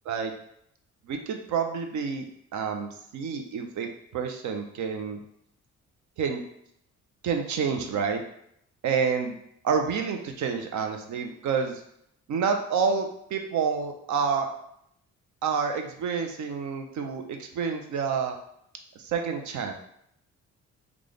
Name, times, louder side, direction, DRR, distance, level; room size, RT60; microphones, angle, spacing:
voice 1, 1.1-2.3 2.5-5.2 6.2-6.4 7.2-8.2 8.8-9.4 9.6-11.8 12.3-14.5 15.4-18.4 19.0-19.7, right 6 dB, 70° right, 4 dB, 0.7 m, -28 dB
3.2 x 2.4 x 3.9 m, 0.73 s
cardioid pair, 90°, 30 cm